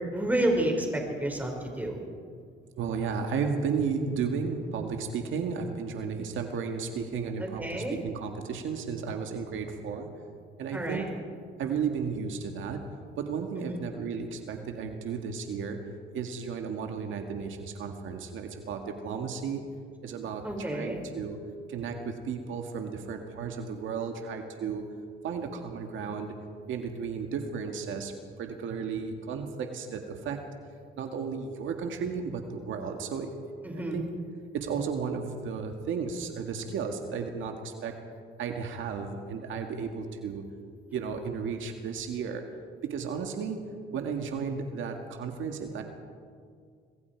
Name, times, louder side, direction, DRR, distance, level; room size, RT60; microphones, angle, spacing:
voice 1, 0.1-2.0 7.6-8.0 10.7-11.0 13.7-13.8 20.4-21.0 33.6-34.0, right 1 dB, 10° right, 1 dB, 5.4 m, -29 dB
voice 2, 2.8-10.1 10.6-11.1 11.6-12.8 13.2-15.8 16.1-19.6 20.0-21.4 21.7-24.8 25.2-26.4 26.7-30.4 31.0-33.3 33.7-34.0 34.5-37.9 38.4-40.4 40.9-42.4 42.9-43.6 43.9-45.8, right 6 dB, 80° right, 4 dB, 2.0 m, -34 dB
26.5 x 21.0 x 4.7 m, 2.1 s
cardioid pair, 90°, 20 cm